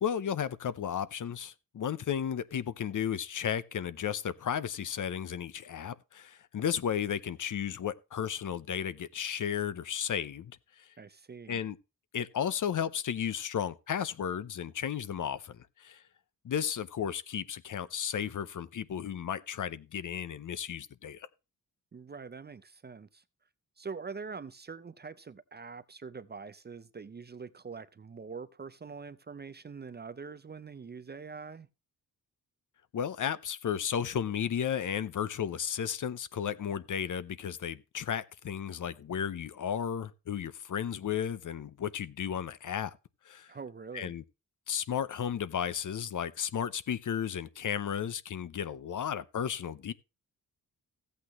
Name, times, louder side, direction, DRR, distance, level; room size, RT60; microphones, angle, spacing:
voice 1, 0.0-10.9 11.5-11.8 12.1-16.0 16.4-21.3 32.9-43.0 43.2-43.5 43.9-44.2 44.7-49.9, left 8 dB, 60° left, 0.7 m, -34 dB
voice 2, 11.0-11.6 21.9-23.2 23.8-31.7 43.5-44.1, right 5 dB, 30° right, 0.5 m, -44 dB
15.0 x 8.3 x 3.0 m
wide cardioid pair, 125°, 36 cm